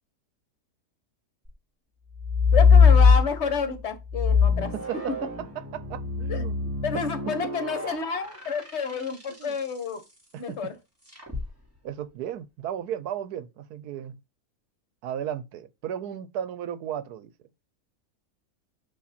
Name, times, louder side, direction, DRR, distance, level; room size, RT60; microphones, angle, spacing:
sound 1, 2.2-3.6 4.1-9.6 11.1-11.5, left 5 dB, 10° right, 2.2 m, -21 dB
voice 1, 2.5-4.7 6.3-6.4 6.8-10.0 10.4-10.8, left 5 dB, 50° left, 1.3 m, -29 dB
voice 2, 4.9-5.3 5.6-6.6 6.9-7.1 7.4-7.5 9.3-9.6 10.3-10.6 11.8-14.2 15.0-17.3, right 10 dB, 80° right, 1.2 m, -35 dB
8.5 x 3.0 x 4.2 m
omnidirectional pair, 1.6 m